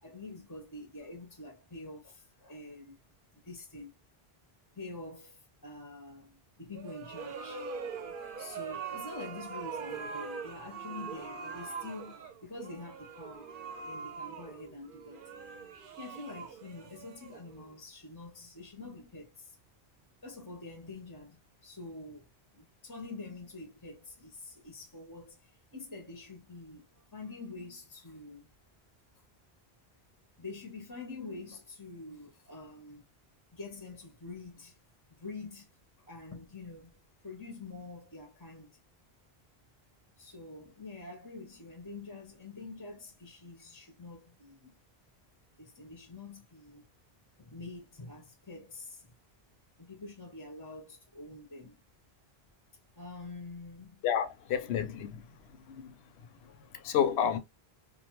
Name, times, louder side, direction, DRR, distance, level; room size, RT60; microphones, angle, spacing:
voice 1, 0.0-3.0 3.3-3.9 4.8-7.7 8.4-13.5 13.8-15.3 16.0-19.5 20.2-28.5 30.4-33.0 33.5-34.7 35.2-35.7 36.0-37.0 37.2-38.7 40.2-44.7 45.6-46.8 47.4-49.1 49.8-51.8 53.0-54.0 57.2-57.4, left 3 dB, 25° left, 0.5 m, -46 dB
sound 1, 6.7-17.7, right 6 dB, 60° right, 0.7 m, -42 dB
voice 2, 54.0-55.2 55.7-55.9 56.7-57.4, left 8 dB, 80° left, 0.8 m, -30 dB
2.4 x 2.2 x 2.9 m
omnidirectional pair, 1.1 m